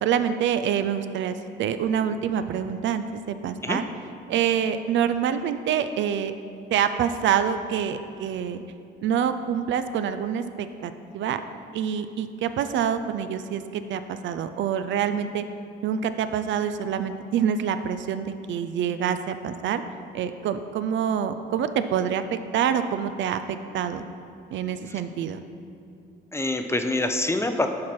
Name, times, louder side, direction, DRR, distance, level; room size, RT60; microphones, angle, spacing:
voice 1, 0.0-3.9 4.3-6.3 6.7-8.6 9.0-11.4 11.7-15.4 15.8-19.8 20.1-24.0 24.5-25.4, right 8 dB, 70° right, 10 dB, 0.4 m, -26 dB
voice 2, 26.3-27.7, left 2 dB, 15° left, 6 dB, 0.5 m, -25 dB
7.3 x 4.6 x 5.8 m, 2.5 s
cardioid pair, 90°, 20 cm